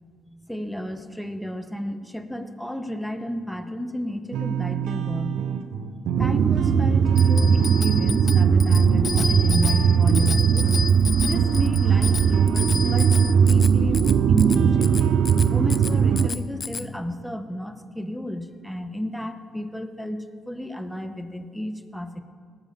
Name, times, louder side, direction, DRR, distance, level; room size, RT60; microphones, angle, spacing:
voice 1, 0.5-5.4 6.2-10.7 11.2-15.0 15.3-22.2, left 1 dB, 5° left, 8 dB, 0.9 m, -32 dB
sound 1, 4.3-16.3, right 7 dB, 85° right, 0.8 m, -28 dB
sound 2, 6.2-16.3, right 7 dB, 65° right, 0.4 m, -19 dB
Bicycle bell, 7.2-16.9, left 5 dB, 40° left, 0.3 m, -32 dB
18.5 x 7.3 x 6.8 m, 2.1 s
cardioid pair, 90°, 0 cm